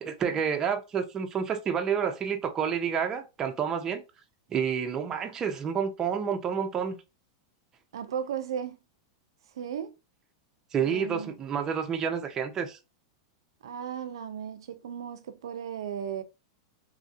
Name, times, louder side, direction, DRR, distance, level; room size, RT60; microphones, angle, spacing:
voice 1, 0.0-4.0 4.5-7.0 10.7-12.8, right 7 dB, 20° right, 0.4 m, -29 dB
voice 2, 7.9-8.8 9.5-10.0 10.8-11.3 13.6-16.2, right 8 dB, 85° right, 0.4 m, -35 dB
3.0 x 2.5 x 2.4 m
supercardioid pair, 140°, 2 cm